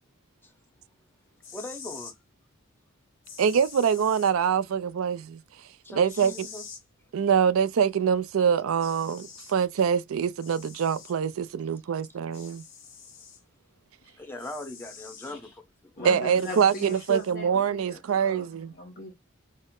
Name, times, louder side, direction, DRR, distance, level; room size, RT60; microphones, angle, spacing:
sound 1, 1.4-2.2 3.2-4.3 6.1-6.8 8.3-8.4 8.8-9.6 10.4-11.2 12.3-13.4 14.4-15.3 16.4-17.3, left 6 dB, 60° left, 1.4 m, -46 dB
voice 1, 1.5-2.1 5.8-6.7 14.2-16.2, left 1 dB, 10° left, 0.8 m, -40 dB
voice 2, 3.4-5.4 5.9-6.3 7.1-12.6 16.0-18.7, right 7 dB, 70° right, 0.4 m, -24 dB
voice 3, 16.0-19.1, left 1 dB, 45° left, 0.9 m, -39 dB
4.2 x 2.0 x 3.6 m
head